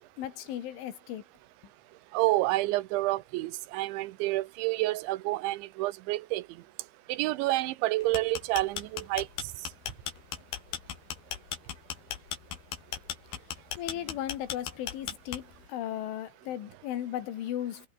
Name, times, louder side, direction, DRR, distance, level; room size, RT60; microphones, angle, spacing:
voice 1, 0.2-1.2 13.8-17.9, left 11 dB, 80° left, 4.6 m, -36 dB
voice 2, 2.1-6.4 7.1-9.3, right 18 dB, 80° right, 3.1 m, -29 dB
sound 1, 8.0-15.7, left 9 dB, 60° left, 3.8 m, -37 dB
omnidirectional pair, 5.5 m